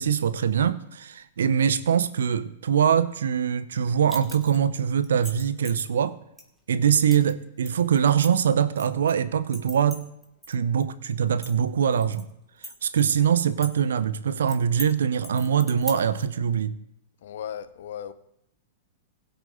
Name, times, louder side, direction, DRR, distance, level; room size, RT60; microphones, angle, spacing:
voice 1, 0.0-6.2 6.7-10.1 10.5-12.3 12.8-16.7, right 8 dB, 65° right, 0.7 m, -23 dB
sound 1, 4.1-4.6 5.0-5.8 6.4-6.5 7.1-7.3 7.6-9.1 9.5-10.5 10.8-10.9 11.3-12.2 12.6-13.7 14.0-14.1 14.5-14.9 15.2-16.2, equal, ahead, 2.2 m, -39 dB
voice 2, 17.2-18.1, left 9 dB, 55° left, 0.8 m, -36 dB
21.0 x 8.0 x 2.7 m
figure-of-eight pair, 95°, 0 cm